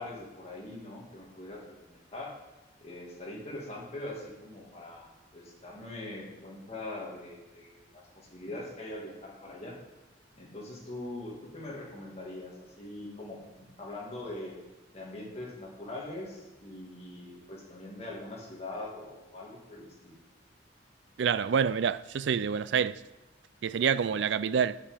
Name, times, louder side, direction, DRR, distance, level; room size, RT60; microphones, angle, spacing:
voice 1, 0.0-2.3 2.8-9.8 10.3-14.6 14.9-20.2 24.1-24.5, left 2 dB, 35° left, 2.3 m, -42 dB
voice 2, 21.2-23.0 23.6-24.8, right 7 dB, 65° right, 0.4 m, -27 dB
9.4 x 7.1 x 5.1 m
head